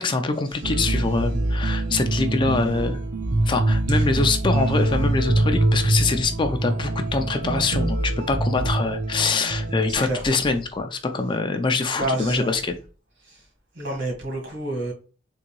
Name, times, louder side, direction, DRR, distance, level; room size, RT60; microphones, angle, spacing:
voice 1, 0.0-3.0 3.5-12.7, left 3 dB, 25° left, 0.4 m, -24 dB
sound 1, 0.6-10.2, right 2 dB, 40° right, 0.5 m, -24 dB
voice 2, 9.9-10.2 11.9-12.5 13.8-14.9, right 1 dB, 65° right, 1.7 m, -28 dB
3.8 x 2.6 x 3.0 m
head